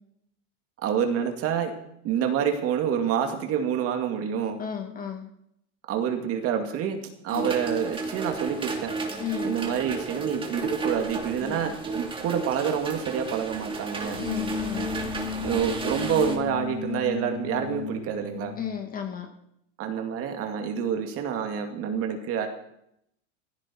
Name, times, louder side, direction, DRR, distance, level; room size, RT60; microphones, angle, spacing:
voice 1, 0.8-1.7 2.0-4.6 5.9-7.0 7.2-8.9 9.4-14.2 15.4-18.5 19.8-22.5, right 8 dB, 40° right, 5 dB, 2.4 m, -27 dB
voice 2, 4.6-5.3 7.3-7.5 9.2-9.5 11.4-11.7 14.2-14.9 18.6-19.3, left 8 dB, 25° left, 4 dB, 2.1 m, -34 dB
sound 1, 7.3-16.4, right 3 dB, 15° right, 2.5 m, -33 dB
sound 2, 14.0-18.8, left 8 dB, 65° left, 3.1 m, -35 dB
17.0 x 15.0 x 4.6 m, 0.76 s
supercardioid pair, 140°, 34 cm